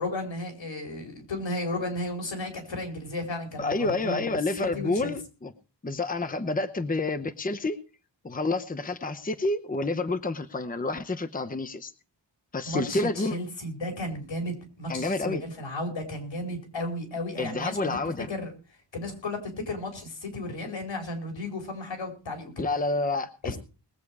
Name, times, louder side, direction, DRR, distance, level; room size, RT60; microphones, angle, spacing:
voice 1, 0.0-5.1 12.6-18.0 18.3-18.5 18.9-22.7, left 1 dB, 85° left, 4 dB, 5.0 m, -34 dB
voice 2, 3.6-5.5 5.8-7.8 8.2-11.9 12.5-13.4 14.9-15.4 17.4-18.3 22.6-23.6, left 2 dB, 20° left, 10 dB, 0.9 m, -29 dB
21.0 x 8.4 x 4.8 m, 0.34 s
wide cardioid pair, 125°, 44 cm